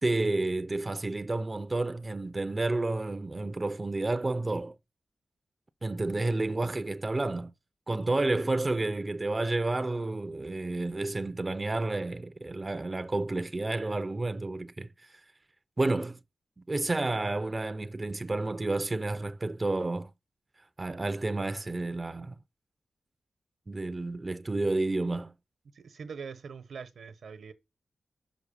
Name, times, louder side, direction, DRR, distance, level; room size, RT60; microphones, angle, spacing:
voice 1, 0.0-4.8 5.8-7.5 7.9-15.2 15.8-16.2 16.7-20.1 20.8-22.3 23.7-25.3, right 2 dB, 25° right, 0.4 m, -30 dB
voice 2, 25.7-27.5, right 5 dB, 80° right, 0.9 m, -43 dB
6.0 x 5.6 x 6.9 m
wide cardioid pair, 145°, 0 cm